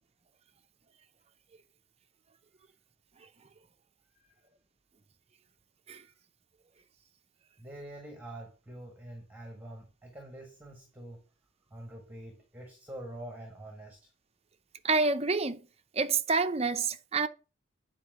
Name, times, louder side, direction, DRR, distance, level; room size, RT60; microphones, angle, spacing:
voice 1, 7.6-11.2 11.7-14.1, right 1 dB, 10° right, 1.5 m, -46 dB
voice 2, 14.8-15.6 16.0-17.3, right 4 dB, 30° right, 0.6 m, -27 dB
9.0 x 4.4 x 4.9 m
head